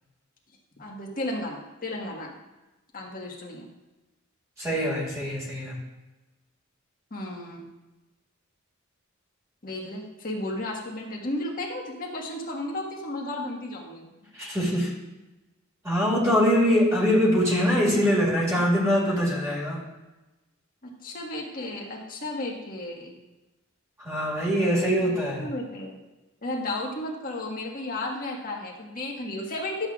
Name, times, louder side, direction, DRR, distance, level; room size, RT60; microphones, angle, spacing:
voice 1, 0.8-2.3 2.9-3.7 7.1-7.6 9.6-14.1 21.0-23.1 25.0-25.1 25.4-26.0 26.4-29.9, left 1 dB, 40° left, -1 dB, 1.5 m, -33 dB
voice 2, 4.6-5.7 14.3-14.9 15.8-19.8 24.0-25.4, equal, 15° right, -5 dB, 2.1 m, -23 dB
11.5 x 7.7 x 2.4 m, 1.1 s
head